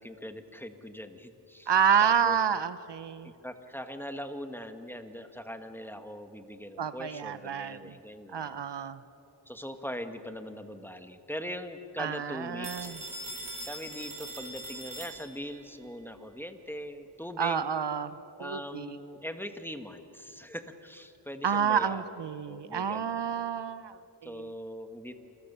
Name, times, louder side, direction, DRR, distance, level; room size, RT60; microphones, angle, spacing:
voice 1, 0.0-1.7 2.0-2.4 3.2-8.6 9.5-12.7 13.7-17.6 18.4-22.0 22.5-23.4 24.2-25.1, equal, 5° left, 7 dB, 1.5 m, -41 dB
voice 2, 1.7-3.3 6.8-8.0 8.3-9.0 12.0-13.0 17.4-18.1 18.4-19.0 21.4-24.5, right 7 dB, 70° right, 13 dB, 0.9 m, -29 dB
Telephone, 12.6-15.6, right 1 dB, 45° right, 4.5 m, -41 dB
28.0 x 22.5 x 6.8 m, 2.9 s
wide cardioid pair, 95°, 43 cm